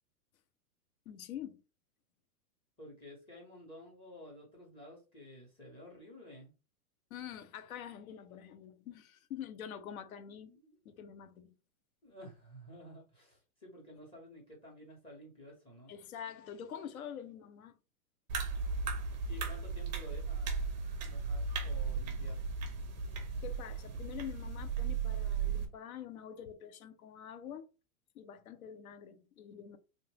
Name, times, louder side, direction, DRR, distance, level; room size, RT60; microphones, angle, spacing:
voice 1, 1.1-1.6 7.1-10.5 10.8-11.5 15.9-17.8 23.4-27.7 28.1-29.8, left 9 dB, 65° left, 0.7 m, -46 dB
voice 2, 2.8-6.5 10.4-10.8 12.0-15.9 19.3-22.4, left 1 dB, 10° left, 0.7 m, -52 dB
sound 1, 18.3-25.7, right 5 dB, 30° right, 0.5 m, -36 dB
3.0 x 2.1 x 3.2 m
hypercardioid pair, 150°, 46 cm